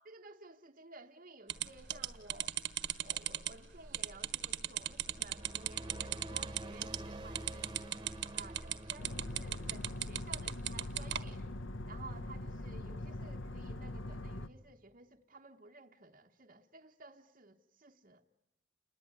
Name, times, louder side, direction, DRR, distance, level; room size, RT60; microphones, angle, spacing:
voice 1, 0.0-2.6 3.0-7.7 8.3-11.5 11.8-18.2, right 3 dB, 45° right, 1.1 m, -55 dB
sound 1, 1.5-11.2, right 12 dB, 65° right, 1.3 m, -37 dB
sound 2, 4.7-11.4, right 1 dB, 25° right, 1.4 m, -48 dB
sound 3, 9.0-14.5, left 1 dB, 85° left, 1.0 m, -42 dB
29.0 x 20.5 x 9.6 m
head